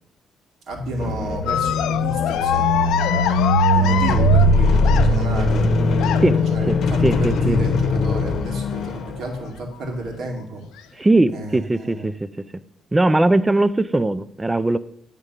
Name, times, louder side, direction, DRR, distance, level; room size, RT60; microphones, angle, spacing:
voice 1, 0.7-3.3 3.7-5.7 5.9-10.6 11.3-12.1, right 2 dB, 70° right, 1 dB, 2.1 m, -32 dB
sound 1, 0.8-9.5, left 1 dB, 65° left, 0.9 m, -20 dB
sound 2, 1.5-5.4 6.0-6.5 7.5-7.9 8.3-8.4 9.7-9.8 10.6-10.8, left 11 dB, 90° left, 0.4 m, -24 dB
voice 2, 7.0-7.6 11.0-12.1 12.9-14.8, right 2 dB, 15° right, 14 dB, 0.4 m, -19 dB
8.8 x 3.7 x 6.6 m, 0.70 s
cardioid pair, 90°, 0 cm